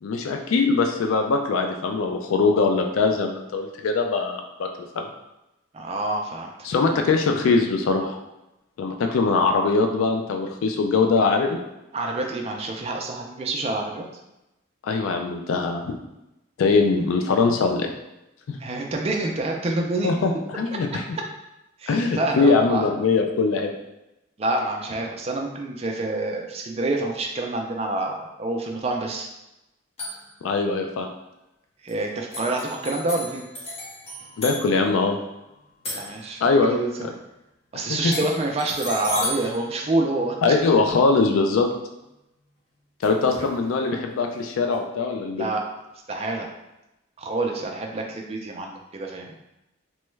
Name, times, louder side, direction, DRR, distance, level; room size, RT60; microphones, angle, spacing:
voice 1, 0.0-4.7 5.0-5.1 6.6-8.2 8.8-11.6 14.8-15.9 16.6-17.9 18.5-18.6 20.0-21.0 21.9-23.7 30.4-31.1 34.4-35.2 36.4-36.8 37.7-38.1 40.4-41.7 43.0-45.5, left 4 dB, 80° left, 4 dB, 0.3 m, -22 dB
voice 2, 5.7-6.5 11.9-14.1 18.6-20.1 21.8-22.9 24.4-29.3 31.8-33.4 35.9-36.9 37.7-40.6 45.4-45.6 46.1-46.5 47.2-49.3, right 2 dB, 30° right, 1 dB, 0.4 m, -27 dB
sound 1, 30.0-30.4 31.9-32.0 32.3-36.8 38.1-40.7 43.0-43.6, left 1 dB, 30° left, 0.7 m, -36 dB
3.1 x 2.3 x 3.1 m, 0.93 s
head